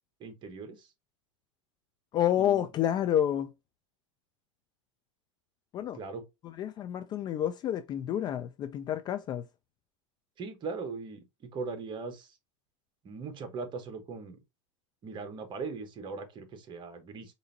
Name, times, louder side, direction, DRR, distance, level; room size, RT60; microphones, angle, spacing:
voice 1, 0.2-0.9 2.4-2.6 5.9-6.2 10.4-11.2 11.5-12.3 13.0-14.4 15.0-17.3, right 4 dB, 30° right, 1.2 m, -39 dB
voice 2, 2.1-3.5 5.7-6.0 6.4-9.4, left 10 dB, 25° left, 0.3 m, -29 dB
4.8 x 2.6 x 2.7 m
hypercardioid pair, 115°, 16 cm